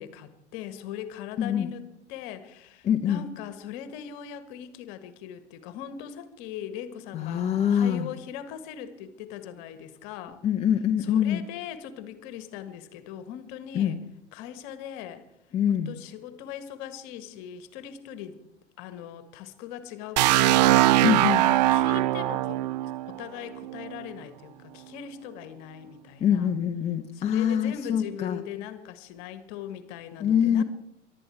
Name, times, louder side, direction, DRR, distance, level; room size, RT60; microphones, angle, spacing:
voice 1, 0.0-10.4 11.0-14.0 14.3-15.2 15.7-18.4 18.8-26.5 27.1-30.6, left 9 dB, 40° left, 12 dB, 1.6 m, -40 dB
voice 2, 1.4-1.7 2.8-3.2 7.1-8.1 10.4-11.4 13.7-14.0 15.5-15.9 21.0-21.4 26.2-28.4 30.2-30.6, left 9 dB, 20° left, 5 dB, 0.8 m, -24 dB
sound 1, 20.2-24.0, right 15 dB, 40° right, 0.4 m, -22 dB
23.0 x 12.0 x 4.6 m, 0.87 s
figure-of-eight pair, 90°, 35 cm